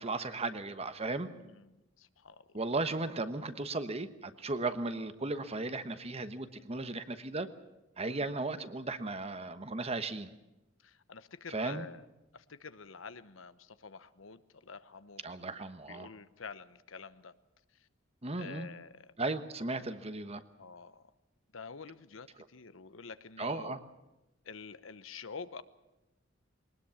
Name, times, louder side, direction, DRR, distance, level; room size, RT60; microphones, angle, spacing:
voice 1, 0.0-1.3 2.5-7.5 8.0-10.3 11.5-11.9 15.2-16.1 18.2-18.7 19.2-20.4 23.4-23.8, right 3 dB, 30° right, 11 dB, 1.2 m, -36 dB
voice 2, 1.3-2.6 8.0-8.3 10.8-12.0 12.3-15.5 15.9-17.3 18.4-19.1 20.6-21.0 21.5-23.8 24.4-25.6, left 5 dB, 90° left, 13 dB, 1.0 m, -48 dB
21.5 x 19.5 x 7.2 m, 0.97 s
head